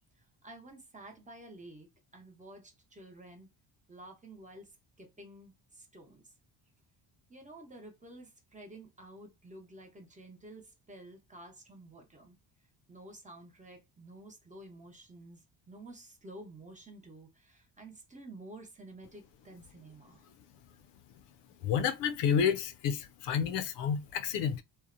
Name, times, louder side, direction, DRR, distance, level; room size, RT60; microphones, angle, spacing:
voice 1, 0.4-1.9 2.1-3.5 3.9-6.3 7.3-12.4 12.9-20.3, right 1 dB, 15° right, 0.8 m, -51 dB
voice 2, 21.6-24.6, left 7 dB, 75° left, 0.5 m, -30 dB
2.6 x 2.1 x 2.4 m
cardioid pair, 110°, 43 cm